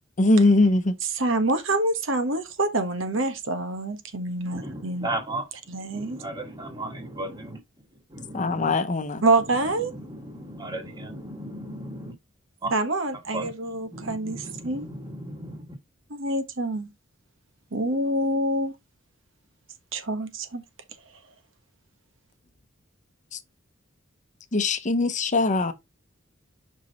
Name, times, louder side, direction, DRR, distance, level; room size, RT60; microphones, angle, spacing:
voice 1, 0.2-0.9 8.3-9.2 24.5-25.7, left 2 dB, 40° left, 0.7 m, -21 dB
voice 2, 1.0-5.1 5.7-6.2 9.2-9.9 12.7-14.4 14.6-14.8 16.1-16.9 17.7-18.7 19.9-20.6, right 2 dB, 70° right, 1.3 m, -26 dB
voice 3, 4.5-7.6 8.1-8.8 9.4-12.1 12.6-12.7 13.3-15.7, right 1 dB, 20° right, 1.7 m, -36 dB
5.4 x 4.9 x 4.0 m
head